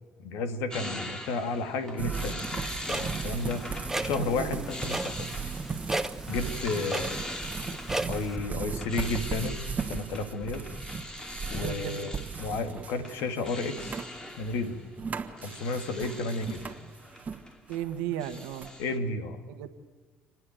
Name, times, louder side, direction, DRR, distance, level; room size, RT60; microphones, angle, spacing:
voice 1, 0.2-2.4 2.9-3.6 4.0-5.4 6.3-7.2 8.1-10.7 11.5-14.0 14.4-14.8 15.4-16.6 18.8-19.4, left 3 dB, 75° left, 8 dB, 2.1 m, -32 dB
sound 1, 0.7-17.9 18.2-19.0, left 1 dB, 15° left, 2.4 m, -42 dB
sound 2, 2.0-17.4 17.7-18.7, right 5 dB, 30° right, 1.4 m, -37 dB
Clock, 2.8-8.4, right 2 dB, 10° right, 0.9 m, -36 dB
voice 2, 11.6-12.1 16.8-16.9 17.7-18.7 19.5-19.7, right 11 dB, 85° right, 9 dB, 1.5 m, -35 dB
29.5 x 9.9 x 9.3 m, 1.5 s
supercardioid pair, 85°, 5 cm